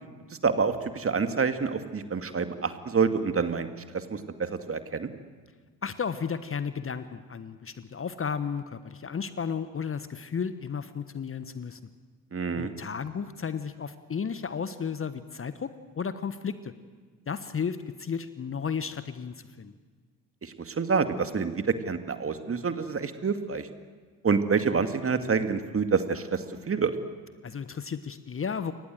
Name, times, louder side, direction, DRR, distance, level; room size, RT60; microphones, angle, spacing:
voice 1, 0.4-3.7 3.9-5.1 12.3-12.7 20.4-23.7 24.2-26.9, right 5 dB, 25° right, 9 dB, 2.3 m, -27 dB
voice 2, 5.8-11.8 12.5-16.7 17.3-19.7 27.4-28.7, left 6 dB, 25° left, 13 dB, 1.3 m, -33 dB
29.0 x 24.0 x 7.9 m, 1.5 s
figure-of-eight pair, 50°, 50 cm